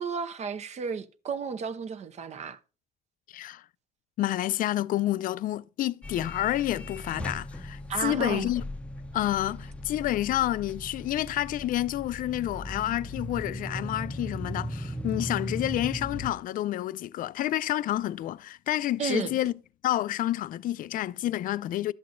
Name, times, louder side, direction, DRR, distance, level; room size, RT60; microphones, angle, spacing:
voice 1, 0.0-2.6 7.9-8.5 19.0-19.4, right 6 dB, 40° right, 0.7 m, -32 dB
voice 2, 3.3-3.6 4.2-8.6 9.1-19.5 19.8-21.9, left 14 dB, 55° left, 0.4 m, -29 dB
sound 1, 6.0-16.3, left 1 dB, 5° left, 0.6 m, -38 dB
12.0 x 7.7 x 2.5 m
cardioid pair, 110°, 17 cm